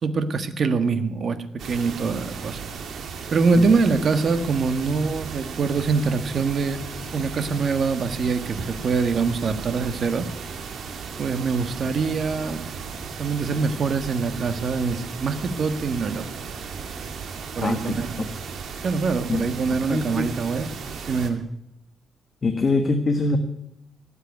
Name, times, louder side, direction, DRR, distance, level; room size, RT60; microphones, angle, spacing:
voice 1, 0.0-1.4 1.6-2.7 3.3-6.8 7.1-10.3 11.2-12.6 13.2-16.3 17.6-18.3 18.8-20.7 21.1-21.4, right 4 dB, 50° right, 9 dB, 1.5 m, -24 dB
sound 1, 1.6-21.3, right 5 dB, 70° right, 2.5 m, -35 dB
voice 2, 17.6-18.0 19.3-19.5 19.9-20.3 22.4-23.4, left 3 dB, 35° left, 6 dB, 1.4 m, -23 dB
18.0 x 8.2 x 9.4 m, 0.83 s
cardioid pair, 115°, 0 cm